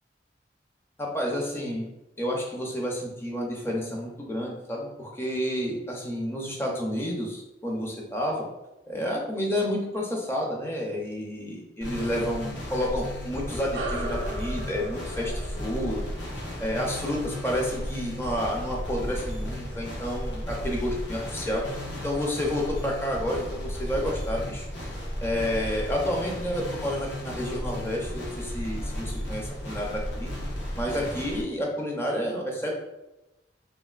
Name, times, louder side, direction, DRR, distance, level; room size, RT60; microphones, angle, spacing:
voice 1, 1.0-1.9 2.2-8.5 8.9-16.0 16.6-24.7 25.2-30.3 30.8-32.7, equal, 15° left, -1 dB, 0.5 m, -30 dB
sound 1, 11.8-31.4, equal, 85° left, 0.8 m, -34 dB
sound 2, 13.7-18.6, right 1 dB, 75° right, 0.6 m, -38 dB
3.2 x 2.5 x 2.3 m, 0.97 s
head